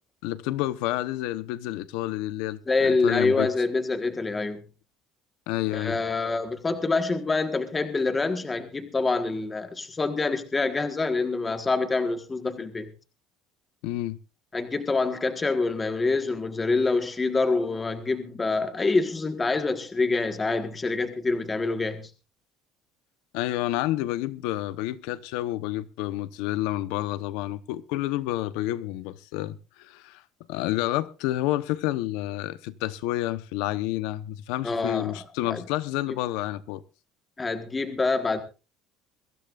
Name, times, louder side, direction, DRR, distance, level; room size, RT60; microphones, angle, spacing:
voice 1, 0.2-3.5 5.5-6.0 13.8-14.2 23.3-30.2 30.5-36.8, left 15 dB, 80° left, 1.0 m, -29 dB
voice 2, 2.7-4.6 5.7-12.9 14.5-22.1 34.6-35.2 35.5-35.6 36.1-36.2 37.4-38.4, left 3 dB, 15° left, 1.5 m, -26 dB
22.5 x 15.5 x 2.5 m
cardioid pair, 170°, 0 cm